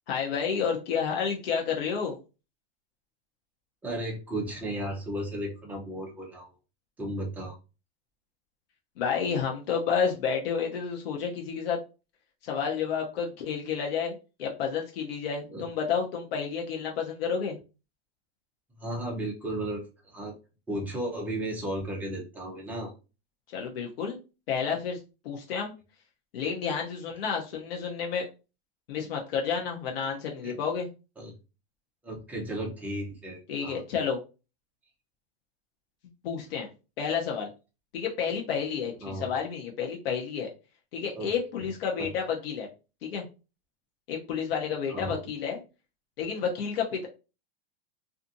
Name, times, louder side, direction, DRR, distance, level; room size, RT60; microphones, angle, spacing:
voice 1, 0.1-2.2 9.0-11.8 12.4-17.6 23.5-24.2 24.5-25.0 25.2-25.7 26.3-28.3 28.9-30.9 33.5-34.2 36.2-36.7 37.0-37.5 37.9-40.5 40.9-42.7 43.0-43.2 44.1-45.6 46.2-47.1, left 6 dB, 75° left, 0 dB, 0.7 m, -30 dB
voice 2, 3.8-6.5 7.0-7.5 15.5-15.6 18.8-20.3 20.7-22.9 30.4-30.5 31.2-31.3 32.0-33.8 39.0-39.3 41.2-41.3 42.0-42.1 44.9-45.2, right 1 dB, 5° right, -2 dB, 0.5 m, -34 dB
2.5 x 2.5 x 2.6 m, 0.31 s
supercardioid pair, 155°, 30 cm